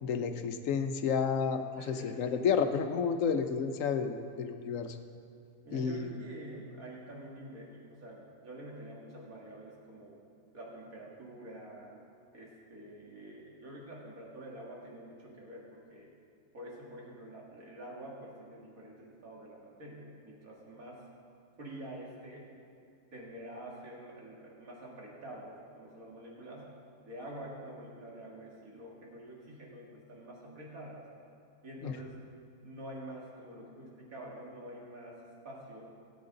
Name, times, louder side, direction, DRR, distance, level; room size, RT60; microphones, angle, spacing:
voice 1, 0.0-5.0 5.7-6.1 31.8-32.0, left 6 dB, 70° left, 7 dB, 1.0 m, -31 dB
voice 2, 1.8-2.2 5.6-10.2 10.5-12.0 12.3-16.1 16.5-21.0 21.6-22.5 23.1-26.7 27.0-31.1 31.6-32.2 32.6-35.9, right 1 dB, 75° right, -3 dB, 2.4 m, -47 dB
17.0 x 7.8 x 3.8 m, 2.6 s
omnidirectional pair, 1.5 m